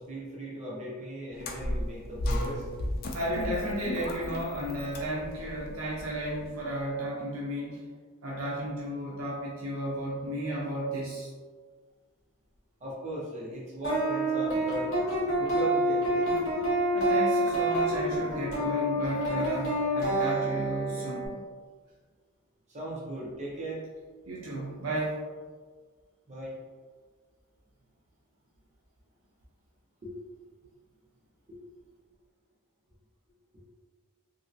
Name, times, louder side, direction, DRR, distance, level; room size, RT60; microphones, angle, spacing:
voice 1, 0.0-2.7 12.8-15.0 15.4-16.4 22.7-23.8 26.3-26.5 30.0-30.1 31.5-31.6 33.5-33.6, right 1 dB, 35° right, -6 dB, 0.7 m, -38 dB
sound 1, 1.4-6.6, left 1 dB, 45° left, 0.4 m, -34 dB
voice 2, 3.1-7.9 8.2-11.3 16.9-21.4 24.3-25.2, right 1 dB, 70° right, -5 dB, 0.6 m, -33 dB
sound 2, 13.8-21.3, right 1 dB, 60° left, 1.3 m, -27 dB
2.9 x 2.7 x 2.6 m, 1.5 s
head